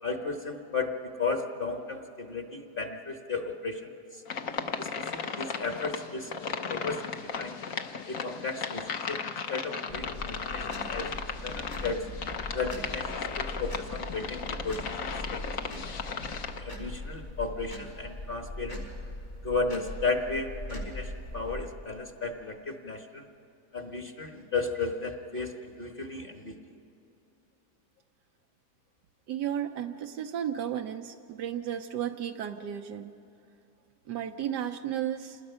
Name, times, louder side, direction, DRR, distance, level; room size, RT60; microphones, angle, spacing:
voice 1, 0.0-4.2 4.8-7.1 7.4-7.6 8.1-9.2 9.5-11.1 11.4-12.0 12.5-13.1 13.4-16.0 16.5-18.8 19.4-23.3 23.7-26.6, left 4 dB, 35° left, 4 dB, 1.3 m, -34 dB
sound 1, 4.3-16.6, left 5 dB, 60° left, 1.3 m, -36 dB
sound 2, 9.9-21.7, left 1 dB, 85° left, 5.4 m, -41 dB
voice 2, 29.3-33.1 34.1-35.4, right 10 dB, 85° right, 4 dB, 1.4 m, -33 dB
27.5 x 19.5 x 5.6 m, 2.8 s
omnidirectional pair, 1.8 m